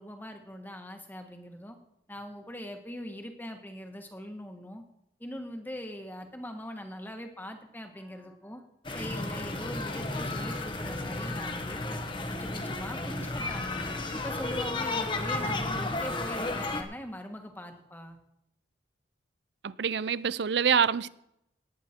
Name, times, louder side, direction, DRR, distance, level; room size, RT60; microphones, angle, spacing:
voice 1, 0.0-1.8 2.1-4.8 5.2-8.6 8.9-12.0 12.3-13.8 14.1-18.2, equal, 10° left, 1.4 m, -41 dB
sound 1, 8.8-16.8, left 2 dB, 25° left, 1.1 m, -33 dB
voice 2, 19.6-21.1, right 7 dB, 70° right, 0.5 m, -26 dB
18.0 x 9.5 x 4.4 m
head